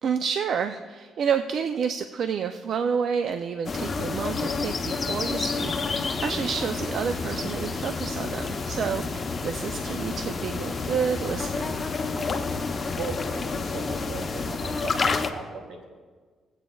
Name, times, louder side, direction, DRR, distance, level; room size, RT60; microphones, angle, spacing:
voice 1, 0.0-11.8, right 6 dB, 65° right, 8 dB, 0.4 m, -29 dB
sound 1, 3.6-15.3, left 4 dB, 35° left, 0.7 m, -29 dB
voice 2, 12.1-12.4 13.0-15.8, right 4 dB, 85° right, 2 dB, 1.7 m, -38 dB
18.5 x 8.2 x 2.3 m, 1.5 s
cardioid pair, 90°, 0 cm